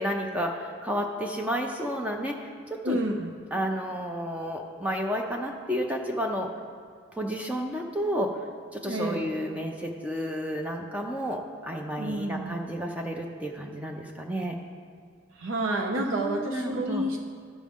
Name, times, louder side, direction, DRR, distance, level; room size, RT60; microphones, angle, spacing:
voice 1, 0.0-3.0 3.5-6.5 7.2-8.3 8.7-14.6 16.0-17.1, equal, 5° right, 1 dB, 0.5 m, -31 dB
voice 2, 2.8-3.3 8.8-9.3 12.0-12.6 15.4-17.2, right 1 dB, 80° right, 2 dB, 0.6 m, -29 dB
13.5 x 6.3 x 3.6 m, 2.1 s
head